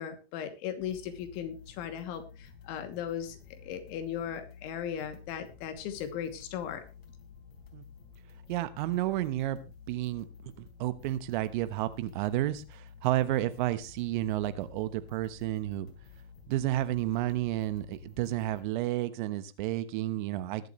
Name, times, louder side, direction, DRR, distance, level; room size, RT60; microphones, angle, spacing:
voice 1, 0.0-6.8, left 9 dB, 45° left, 2.6 m, -37 dB
sound 1, 0.8-18.6, left 6 dB, 70° left, 4.1 m, -52 dB
voice 2, 8.5-9.6 9.9-10.2 10.6-15.9 16.5-20.7, right 14 dB, 50° right, 1.2 m, -31 dB
21.0 x 8.1 x 3.2 m
hypercardioid pair, 125°, 32 cm